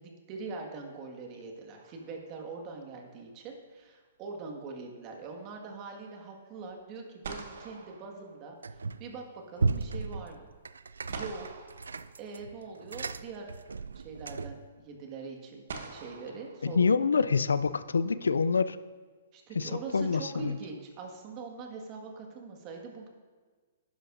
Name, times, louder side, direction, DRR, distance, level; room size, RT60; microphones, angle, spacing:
voice 1, 0.0-10.5 11.1-11.5 12.2-13.5 13.9-17.3 19.3-23.1, right 4 dB, 35° right, 2 dB, 1.8 m, -43 dB
sound 1, 1.7-2.6 6.7-6.8 7.2-9.0 11.1-12.7 14.0-14.1 15.7-17.3, right 4 dB, 70° right, 1.1 m, -46 dB
sound 2, 8.6-9.1 9.6-14.7, right 4 dB, 90° right, 0.3 m, -35 dB
voice 2, 16.6-18.8 19.6-20.6, left 5 dB, 85° left, 15 dB, 0.4 m, -26 dB
11.0 x 10.5 x 2.6 m, 1.5 s
hypercardioid pair, 135°, 0 cm